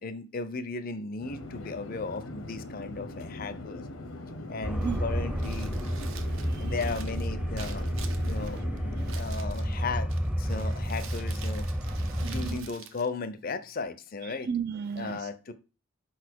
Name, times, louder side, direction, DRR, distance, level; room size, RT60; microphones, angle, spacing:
voice 1, 0.0-3.8 4.5-5.7 6.6-7.9 8.3-8.7 9.1-10.1 10.4-11.7 12.2-14.5 15.0-15.5, left 4 dB, 45° left, 0.5 m, -36 dB
Conversation / Chatter / Fixed-wing aircraft airplane, 1.2-9.2, left 1 dB, 75° left, 0.8 m, -41 dB
sound 1, 4.6-12.6, equal, 5° right, 0.6 m, -31 dB
Crumpling crinkling, 5.3-13.8, right 6 dB, 70° right, 0.8 m, -48 dB
voice 2, 6.1-6.7 8.2-8.6 9.0-9.5 11.9-12.6 14.2-15.2, right 7 dB, 50° right, 0.3 m, -36 dB
5.2 x 4.1 x 4.5 m
head